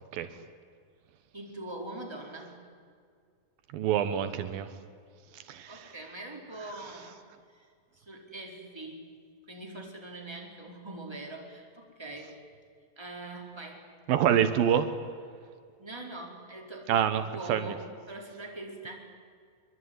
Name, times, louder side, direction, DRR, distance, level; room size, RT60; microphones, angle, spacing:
voice 1, 1.3-2.6 5.6-7.2 7.5-7.7 7.9-9.1 9.5-12.4 13.0-13.9 15.8-18.9, right 2 dB, 5° right, 0 dB, 4.2 m, -43 dB
voice 2, 3.7-4.7 5.5-5.9 14.1-14.9 16.9-17.7, right 9 dB, 80° right, 10 dB, 3.0 m, -26 dB
25.5 x 22.5 x 9.7 m, 2.1 s
omnidirectional pair, 4.1 m